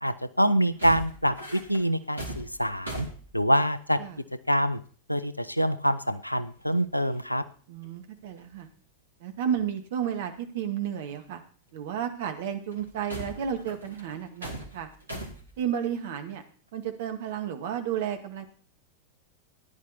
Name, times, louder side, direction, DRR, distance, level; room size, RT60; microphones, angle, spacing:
voice 1, 0.0-3.1 3.3-4.0 4.5-4.8 5.1-7.4, equal, 90° left, 14 dB, 0.8 m, -25 dB
sound 1, 0.7-4.1 6.0-6.1 6.3-6.8 7.1-7.4 7.8-7.9 8.3-8.5 9.5-9.6 11.1-11.2 12.7-15.6, right 1 dB, 80° right, 3.0 m, -40 dB
voice 2, 7.7-8.7 9.2-11.4 11.7-14.9 15.6-16.4 16.7-18.4, right 9 dB, 55° right, 7 dB, 2.0 m, -32 dB
14.5 x 10.5 x 4.2 m, 0.42 s
figure-of-eight pair, 90°, 0 cm